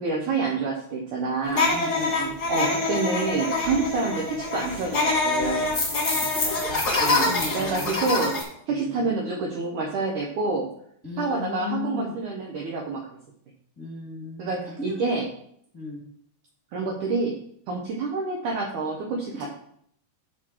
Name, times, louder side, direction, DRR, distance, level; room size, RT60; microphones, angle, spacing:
voice 1, 0.0-1.7 2.5-5.7 7.0-8.3 8.7-10.7 11.2-13.0 14.4-15.3 16.7-17.3 17.7-19.5, right 3 dB, 90° right, -1 dB, 1.7 m, -27 dB
sound 1, 1.5-8.4, left 3 dB, 40° left, 1.5 m, -25 dB
voice 2, 1.7-2.4 5.7-6.9 7.2-8.3 8.7-9.4 11.0-12.1 13.7-15.2 15.7-16.0 19.4-19.5, left 3 dB, 10° left, -5 dB, 1.3 m, -36 dB
12.5 x 4.3 x 4.6 m, 0.68 s
omnidirectional pair, 5.2 m